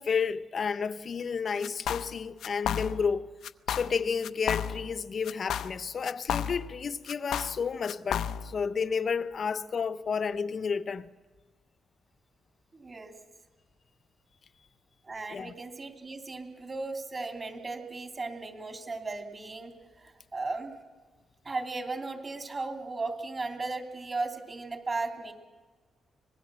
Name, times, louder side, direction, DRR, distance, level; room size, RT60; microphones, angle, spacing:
voice 1, 0.0-3.3 3.7-11.1 15.3-15.5, left 6 dB, 45° left, 0.9 m, -31 dB
sound 1, 1.6-2.1 2.4-3.1 3.4-4.0 4.2-5.0 5.3-6.8 7.1-8.6, left 9 dB, 80° left, 0.7 m, -33 dB
voice 2, 12.7-13.2 15.0-20.7 21.4-25.3, right 3 dB, 30° right, 2.9 m, -36 dB
25.0 x 20.0 x 7.6 m
cardioid pair, 120°, 0 cm